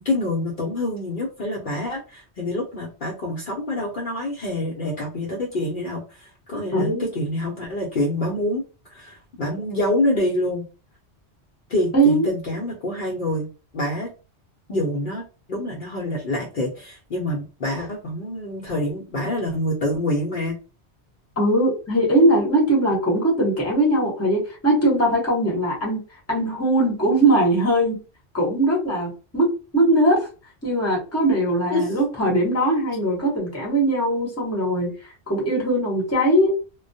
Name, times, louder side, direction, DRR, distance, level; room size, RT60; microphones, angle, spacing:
voice 1, 0.0-8.6 8.9-10.6 11.7-13.5 13.7-14.1 14.7-15.2 15.5-20.6 31.7-31.9, left 1 dB, 55° left, -4 dB, 0.7 m, -26 dB
voice 2, 6.7-7.1 11.9-12.3 21.4-26.0 26.3-28.0 28.3-30.3 30.6-34.9 35.3-36.5, right 1 dB, 15° left, -3 dB, 0.8 m, -20 dB
2.2 x 2.1 x 2.6 m, 0.32 s
omnidirectional pair, 1.1 m